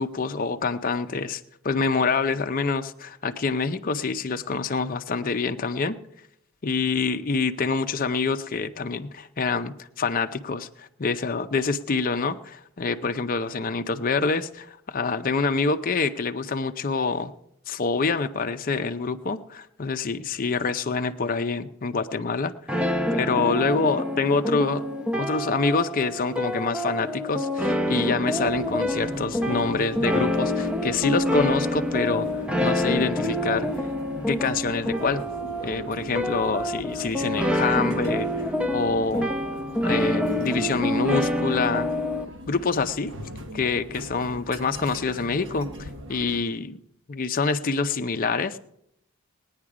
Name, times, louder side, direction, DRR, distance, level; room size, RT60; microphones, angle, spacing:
voice 1, 0.0-6.0 6.6-17.3 17.7-24.9 25.2-32.3 32.6-33.7 34.3-35.2 35.6-38.3 38.7-39.3 39.8-41.9 42.5-43.1 43.5-46.8 47.1-48.6, left 4 dB, 40° left, 7 dB, 0.6 m, -26 dB
sound 1, 22.7-42.2, left 1 dB, 5° right, 0.7 m, -27 dB
sound 2, 28.4-46.4, equal, 60° right, 1.4 m, -40 dB
19.5 x 9.5 x 4.9 m, 0.78 s
head